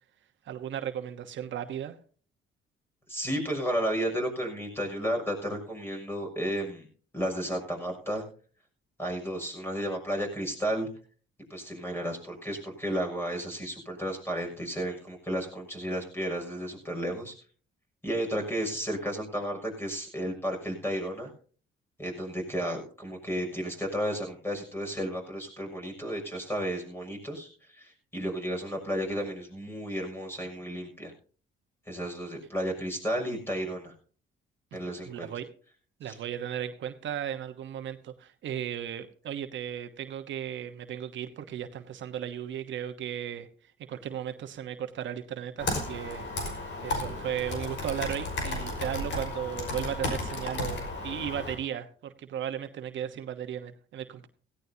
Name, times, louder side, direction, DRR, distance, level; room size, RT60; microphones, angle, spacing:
voice 1, 0.4-2.0 35.1-35.5 36.0-43.5 43.9-46.3 46.8-54.3, right 9 dB, 70° right, 7 dB, 1.1 m, -35 dB
voice 2, 3.1-6.9 7.1-8.2 9.0-10.9 11.5-17.3 18.0-21.3 22.0-31.1 31.9-33.9 34.7-35.3 36.0-36.2, equal, 10° left, 3 dB, 6.5 m, -33 dB
Computer keyboard, 45.6-51.6, left 2 dB, 70° left, 5.3 m, -34 dB
17.0 x 16.0 x 2.8 m, 0.43 s
cardioid pair, 90°, 20 cm